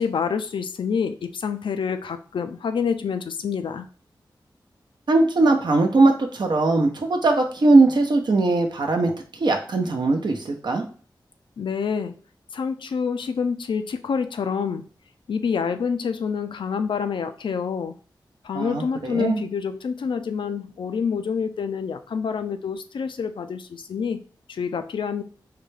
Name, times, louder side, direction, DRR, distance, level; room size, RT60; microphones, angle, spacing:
voice 1, 0.0-3.9 11.6-12.2 12.5-14.8 15.3-17.9 18.4-24.2 24.5-25.2, left 6 dB, 75° left, 9 dB, 0.4 m, -27 dB
voice 2, 5.1-10.8 18.5-19.4, right 3 dB, 60° right, 3 dB, 0.7 m, -20 dB
3.8 x 2.2 x 3.2 m, 0.40 s
cardioid pair, 50°, 8 cm